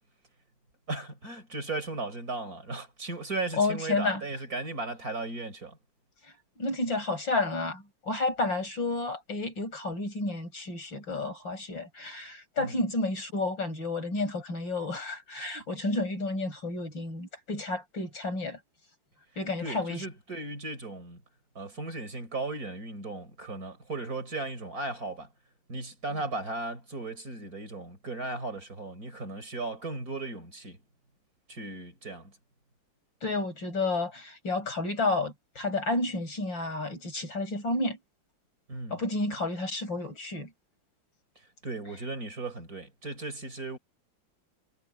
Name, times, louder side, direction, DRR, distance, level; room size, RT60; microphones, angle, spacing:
voice 1, 0.9-5.8 12.6-12.8 19.6-21.2 21.5-25.3 25.7-30.8 31.5-32.3 38.7-39.0 41.6-43.8, right 2 dB, 50° right, 4.7 m, -36 dB
voice 2, 3.6-4.2 6.6-18.6 19.4-20.0 33.2-38.0 38.9-40.5, left 2 dB, 75° left, 8.4 m, -31 dB
omnidirectional pair, 2.1 m